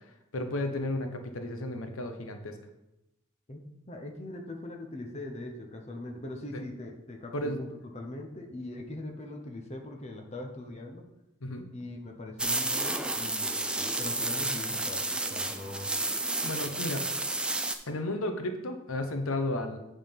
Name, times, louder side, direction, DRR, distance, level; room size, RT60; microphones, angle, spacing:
voice 1, 0.3-2.6 6.5-6.6 7.3-7.6 11.4-11.7 16.4-17.2 17.9-19.8, left 1 dB, 85° left, 6 dB, 0.9 m, -33 dB
voice 2, 3.9-11.0 11.7-15.9, left 1 dB, 30° left, 2 dB, 0.8 m, -41 dB
sound 1, 12.4-17.8, right 2 dB, 5° right, 0.3 m, -31 dB
8.8 x 3.8 x 5.2 m, 0.90 s
head